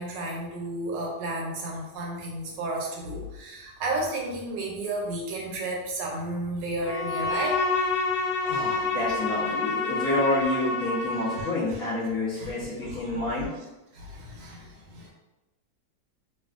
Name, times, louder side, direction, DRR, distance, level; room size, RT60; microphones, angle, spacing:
voice 1, 0.0-7.6 11.3-11.8 12.4-12.5 12.8-13.2 13.9-15.1, right 1 dB, 70° right, -1 dB, 1.2 m, -33 dB
Bowed string instrument, 6.8-11.6, left 3 dB, 70° left, 1.3 m, -28 dB
voice 2, 8.4-13.5, left 2 dB, 55° left, -11 dB, 1.1 m, -28 dB
3.3 x 2.3 x 2.3 m, 1.0 s
omnidirectional pair, 2.1 m